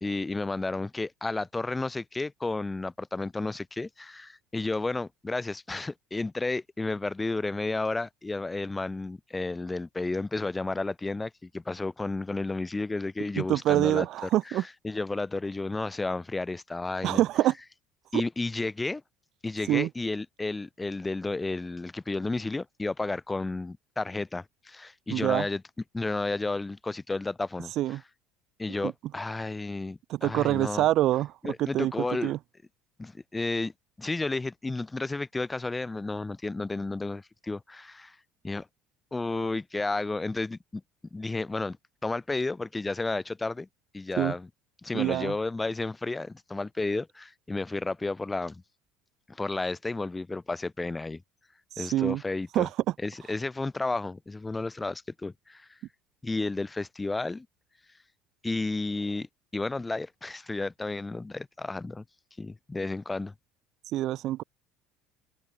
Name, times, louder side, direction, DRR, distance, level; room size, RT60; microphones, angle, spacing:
voice 1, 0.0-17.2 18.1-19.0 19.4-25.6 25.9-28.0 28.6-30.9 31.4-32.3 33.0-33.7 34.0-38.2 38.4-38.7 39.1-40.8 41.1-41.8 42.0-43.7 43.9-44.5 44.8-48.6 49.3-51.2 51.8-52.7 53.0-55.7 56.2-57.5 58.4-59.3 59.5-62.0 62.4-63.3, left 3 dB, 15° left, 1.2 m, -32 dB
voice 2, 13.4-14.6 17.0-17.5 18.1-18.2 19.7-19.9 25.1-25.5 27.8-28.0 28.8-28.9 30.1-31.9 32.2-32.4 44.2-44.3 44.9-45.3 51.8-52.2 52.5-52.7 63.9-64.4, right 14 dB, 55° right, 1.3 m, -25 dB
open air
supercardioid pair, 115°, 0 cm